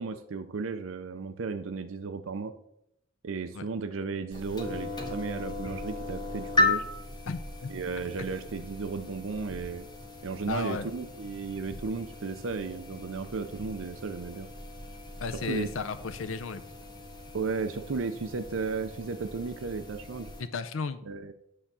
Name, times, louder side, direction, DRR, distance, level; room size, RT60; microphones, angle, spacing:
voice 1, 0.0-2.5 3.2-6.8 7.7-9.9 10.2-14.5 15.5-15.7 17.3-20.3 21.1-21.3, right 4 dB, 70° right, 8 dB, 0.5 m, -34 dB
sound 1, 4.3-20.4, left 2 dB, 20° left, 1.5 m, -36 dB
voice 2, 7.2-7.7 10.5-10.9 15.2-16.6 20.4-21.0, left 4 dB, 75° left, 11 dB, 0.6 m, -34 dB
9.9 x 3.6 x 6.7 m, 0.79 s
head